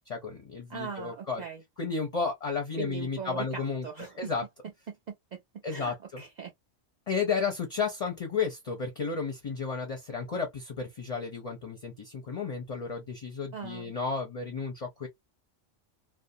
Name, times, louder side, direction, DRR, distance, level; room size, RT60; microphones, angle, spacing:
voice 1, 0.1-1.4 1.8-3.9 4.2-4.4 5.6-6.2 7.1-15.1, left 5 dB, 40° left, 0.6 m, -33 dB
voice 2, 0.7-1.6 2.8-4.3 4.9-5.4 5.7-6.5 13.5-13.9, right 5 dB, 65° right, 0.4 m, -40 dB
2.4 x 2.0 x 2.6 m
omnidirectional pair, 1.2 m